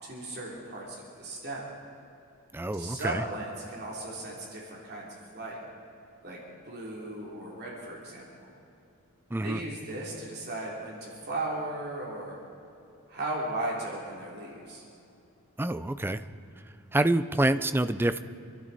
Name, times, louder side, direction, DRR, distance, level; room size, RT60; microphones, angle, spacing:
voice 1, 0.0-1.6 2.8-5.1 5.3-5.6 6.2-6.4 6.7-8.5 9.4-12.4 13.1-14.8, right 2 dB, 45° right, -4 dB, 3.1 m, -36 dB
voice 2, 2.5-3.2 9.3-9.6 15.6-16.2 16.9-18.2, right 1 dB, 10° right, 12 dB, 0.4 m, -27 dB
26.5 x 12.0 x 4.1 m, 2.7 s
head